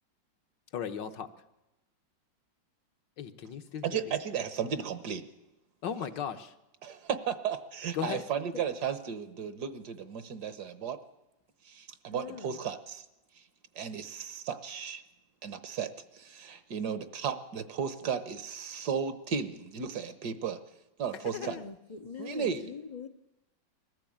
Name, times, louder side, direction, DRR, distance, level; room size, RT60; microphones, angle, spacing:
voice 1, 0.7-1.3 3.2-4.2 5.8-6.5 7.9-8.2 21.3-21.7, left 8 dB, 70° left, 8 dB, 1.7 m, -36 dB
voice 2, 3.8-5.3 6.8-11.0 11.6-13.0 13.7-15.0 15.4-20.6 21.0-21.6 22.2-22.7, right 7 dB, 60° right, 13 dB, 1.5 m, -35 dB
voice 3, 12.1-12.6 21.3-23.1, left 5 dB, 50° left, 2 dB, 0.4 m, -43 dB
21.0 x 14.5 x 8.7 m, 0.98 s
omnidirectional pair, 2.1 m